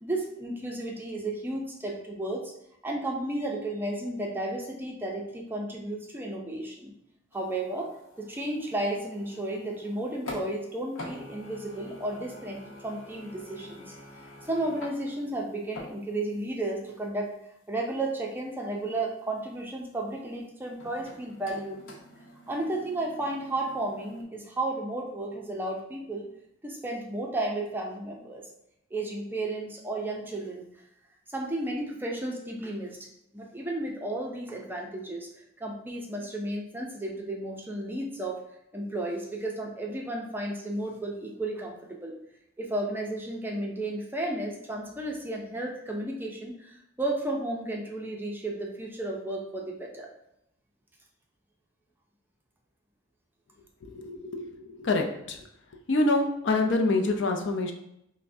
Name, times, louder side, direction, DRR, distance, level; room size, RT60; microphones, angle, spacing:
voice 1, 0.0-2.5 2.8-6.9 7.3-7.9 8.2-13.9 14.4-17.4 17.7-21.8 22.5-26.3 26.6-28.5 28.9-30.6 31.3-33.0 33.3-35.3 35.6-38.4 38.7-42.1 42.6-50.1, right 1 dB, 10° right, -1 dB, 0.4 m, -33 dB
sound 1, 7.3-10.7 10.9-16.4 16.8-16.9 20.8-24.2, left 1 dB, 85° left, 0.8 m, -46 dB
voice 2, 53.8-55.4 55.9-57.7, left 2 dB, 60° left, 3 dB, 0.5 m, -26 dB
5.5 x 2.1 x 2.6 m, 0.79 s
head